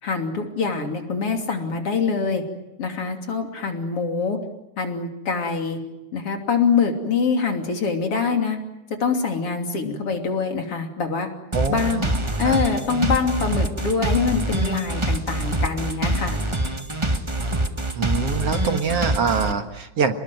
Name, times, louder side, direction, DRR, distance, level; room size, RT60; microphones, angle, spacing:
voice 1, 0.0-2.4 2.8-4.4 4.8-5.8 6.1-8.6 9.0-11.3 11.7-16.4, left 5 dB, 50° left, 4 dB, 3.8 m, -24 dB
sound 1, 11.5-19.5, right 1 dB, 15° right, 1.2 m, -24 dB
voice 2, 11.5-12.6 18.0-20.2, right 5 dB, 55° right, 7 dB, 2.4 m, -25 dB
30.0 x 20.5 x 9.3 m, 0.93 s
omnidirectional pair, 3.4 m